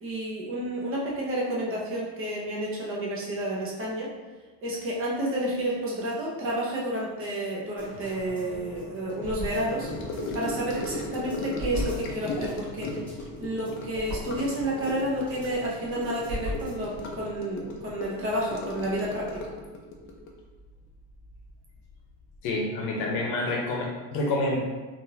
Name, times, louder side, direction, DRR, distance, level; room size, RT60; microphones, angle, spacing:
voice 1, 0.0-4.1 4.6-9.9 10.3-12.9 13.4-19.5, right 1 dB, 30° right, -4 dB, 0.8 m, -30 dB
sound 1, 7.8-17.2 17.6-17.7, left 1 dB, 5° left, 1.4 m, -39 dB
Gurgling / Sink (filling or washing) / Trickle dribble, 9.8-21.5 21.7-22.1 22.3-22.4, left 2 dB, 35° left, 0.4 m, -36 dB
voice 2, 22.4-24.6, left 2 dB, 55° left, -1 dB, 0.8 m, -28 dB
3.5 x 2.6 x 2.8 m, 1.3 s
cardioid pair, 150°, 41 cm